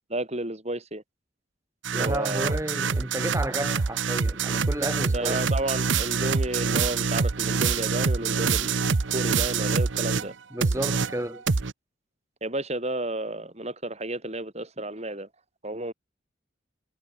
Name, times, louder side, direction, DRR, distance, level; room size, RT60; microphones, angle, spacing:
voice 1, 0.1-1.0 1.9-2.6 5.1-10.3 12.4-15.3 15.6-15.9, right 1 dB, 35° right, 5.0 m, -32 dB
sound 1, 1.8-10.3 10.6-11.7, right 5 dB, 70° right, 0.8 m, -26 dB
voice 2, 1.9-5.5 10.5-11.4, right 1 dB, 15° right, 2.3 m, -32 dB
head